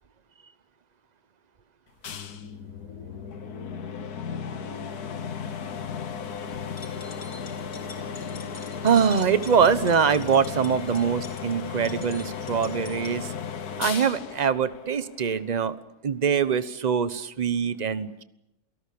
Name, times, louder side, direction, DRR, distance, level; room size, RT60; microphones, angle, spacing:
sound 1, 2.0-15.5, left 7 dB, 70° left, 1.8 m, -35 dB
sound 2, 6.6-13.2, left 3 dB, 40° left, 3.1 m, -46 dB
voice 1, 8.8-13.3 13.8-15.8 16.0-18.2, right 7 dB, 30° right, 13 dB, 1.0 m, -23 dB
28.5 x 18.5 x 8.6 m, 0.89 s
omnidirectional pair, 1.8 m